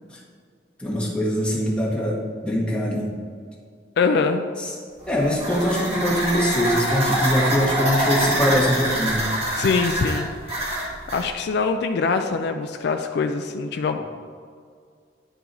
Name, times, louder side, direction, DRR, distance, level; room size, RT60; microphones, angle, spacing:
voice 1, 0.8-3.1 4.6-4.7 5.1-9.2, equal, 5° left, -5 dB, 1.3 m, -23 dB
voice 2, 4.0-4.5 9.6-10.9 11.1-14.0, left 4 dB, 65° left, 6 dB, 0.3 m, -23 dB
sound 1, 5.0-11.3, right 1 dB, 35° right, 1.5 m, -25 dB
9.9 x 4.8 x 2.6 m, 2.1 s
head